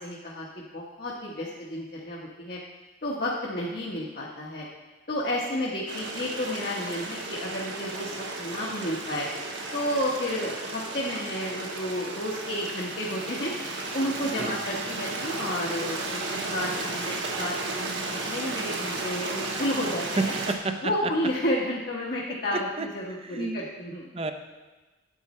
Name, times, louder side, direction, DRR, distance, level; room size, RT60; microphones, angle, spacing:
voice 1, 0.0-2.6 3.0-4.7 5.1-9.3 9.7-13.5 13.9-20.3 20.8-24.1, left 1 dB, 55° left, -4 dB, 1.1 m, -31 dB
Stream, 5.9-20.5, right 3 dB, 70° right, 1.3 m, -34 dB
voice 2, 20.2-20.9 22.5-22.9 23.2-23.6 24.1-24.3, right 3 dB, 30° right, 7 dB, 0.6 m, -30 dB
9.3 x 8.6 x 4.3 m, 1.2 s
head